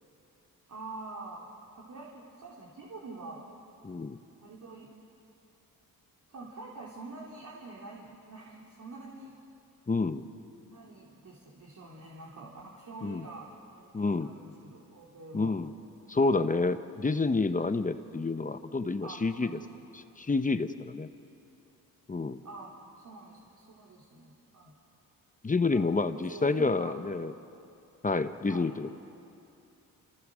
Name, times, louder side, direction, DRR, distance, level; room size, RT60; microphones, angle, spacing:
voice 1, 0.7-1.5 1.8-3.5 4.4-4.9 6.3-9.3 10.7-15.5 19.0-19.8 22.4-24.7 25.7-25.8 26.1-27.0 28.5-28.7, right 3 dB, 55° right, -4 dB, 3.3 m, -46 dB
voice 2, 3.8-4.2 9.9-10.3 13.0-13.3 13.9-14.3 15.3-15.7 16.1-19.6 19.9-21.1 22.1-22.4 25.4-27.3 28.0-28.9, left 3 dB, 20° left, 10 dB, 0.9 m, -29 dB
29.0 x 28.0 x 6.3 m, 2.7 s
cardioid pair, 115°, 37 cm